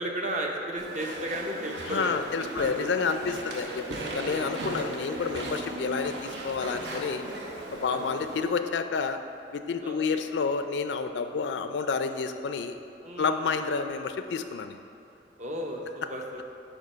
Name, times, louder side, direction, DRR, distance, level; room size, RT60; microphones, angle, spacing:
voice 1, 0.0-2.9 4.3-4.6 7.9-8.1 9.8-10.2 13.0-13.5 15.4-16.4, right 1 dB, 40° right, 1 dB, 0.8 m, -34 dB
Walk footsteps / Chatter / Squeak, 0.8-8.5, right 1 dB, 75° right, 0.9 m, -37 dB
voice 2, 1.9-7.2 7.7-9.2 9.5-12.8 13.2-14.8, left 5 dB, 75° left, 8 dB, 0.4 m, -29 dB
8.9 x 3.0 x 5.5 m, 2.9 s
head